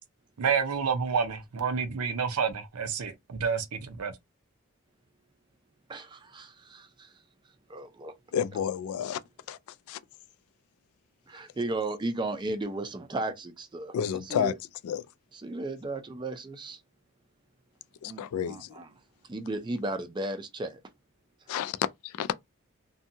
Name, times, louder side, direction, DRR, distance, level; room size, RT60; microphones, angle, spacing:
voice 1, 0.4-4.1, right 6 dB, 90° right, 0.5 m, -29 dB
voice 2, 5.9-7.2 7.7-8.1 11.3-14.6 15.3-16.8 18.1-18.9 19.3-20.8, right 2 dB, 20° right, 0.3 m, -35 dB
voice 3, 8.3-9.2 9.5-9.6 9.9-10.0 13.9-14.5 14.8-15.0 18.0-18.7 21.5-22.3, left 8 dB, 80° left, 0.3 m, -30 dB
2.7 x 2.2 x 2.6 m
head